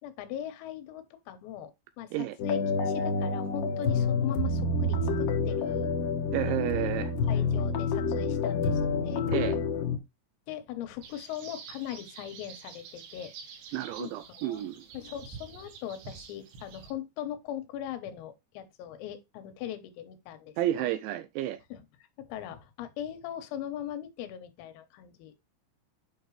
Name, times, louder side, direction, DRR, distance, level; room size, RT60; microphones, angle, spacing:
voice 1, 0.0-1.7 2.0-5.9 6.5-6.8 7.3-9.3 10.5-13.3 14.0-14.6 14.9-20.9 21.7-21.9 22.2-25.4, left 11 dB, 85° left, 3.8 m, -40 dB
sound 1, 2.4-10.0, left 4 dB, 70° left, 2.1 m, -28 dB
voice 2, 6.3-7.1 9.2-9.6 13.7-14.8 20.6-21.6, right 13 dB, 90° right, 2.6 m, -31 dB
sound 2, 11.0-16.9, right 6 dB, 65° right, 3.6 m, -48 dB
8.8 x 5.9 x 3.2 m
omnidirectional pair, 5.9 m